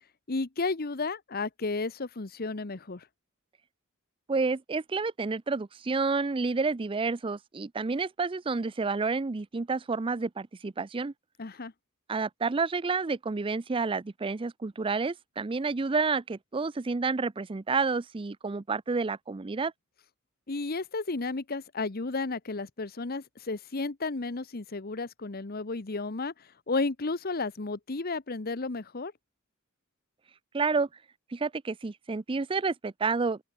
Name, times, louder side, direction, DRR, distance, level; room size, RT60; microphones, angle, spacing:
voice 1, 0.3-3.1 11.4-11.7 20.5-29.1, left 3 dB, 45° left, 1.0 m, -33 dB
voice 2, 4.3-11.1 12.1-19.7 30.5-30.9 31.3-33.4, right 4 dB, 25° right, 0.5 m, -29 dB
open air
head